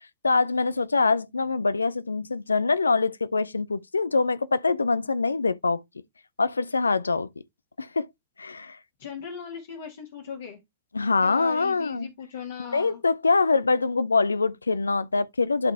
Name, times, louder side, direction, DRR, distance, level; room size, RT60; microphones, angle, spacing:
voice 1, 0.2-5.8 6.4-7.3 7.8-8.1 8.4-8.8 10.9-12.1 12.7-15.7, left 4 dB, 80° left, 0.4 m, -24 dB
voice 2, 9.0-10.6 11.2-13.0, left 7 dB, 65° left, 1.7 m, -38 dB
11.5 x 3.9 x 3.3 m
figure-of-eight pair, 90°, 0 cm